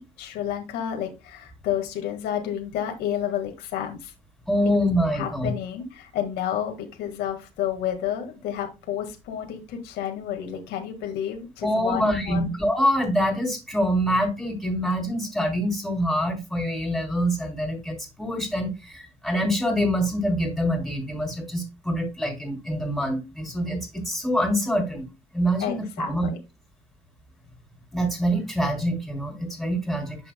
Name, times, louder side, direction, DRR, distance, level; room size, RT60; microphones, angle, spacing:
voice 1, 0.0-4.1 5.1-12.5 25.6-26.4, left 10 dB, 90° left, 1.8 m, -30 dB
voice 2, 4.5-5.5 11.6-25.0 25.3-26.3 27.9-30.3, equal, ahead, 3.2 m, -25 dB
10.0 x 5.8 x 2.2 m
cardioid pair, 110°, 17 cm